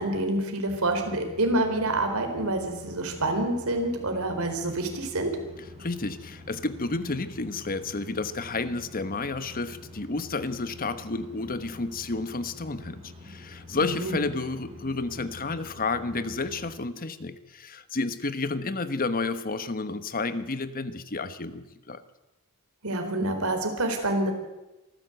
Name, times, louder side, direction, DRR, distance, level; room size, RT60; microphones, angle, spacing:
voice 1, 0.0-5.3 13.8-14.2 22.8-24.3, right 1 dB, 75° right, 5 dB, 4.3 m, -27 dB
sound 1, 0.7-16.7, left 2 dB, 30° right, 7.8 m, -47 dB
voice 2, 5.8-22.0, left 3 dB, 40° left, 12 dB, 1.1 m, -31 dB
25.0 x 14.5 x 8.0 m, 1.0 s
head